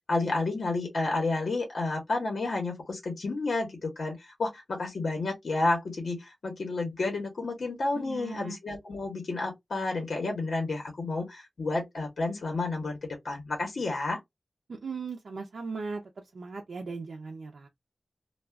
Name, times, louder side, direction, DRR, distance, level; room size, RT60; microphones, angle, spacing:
voice 1, 0.1-14.2, left 3 dB, 80° left, 1.0 m, -31 dB
voice 2, 7.9-8.6 14.7-16.0 16.3-17.7, right 4 dB, 85° right, 0.5 m, -38 dB
2.4 x 2.4 x 3.3 m
wide cardioid pair, 85°, 0 cm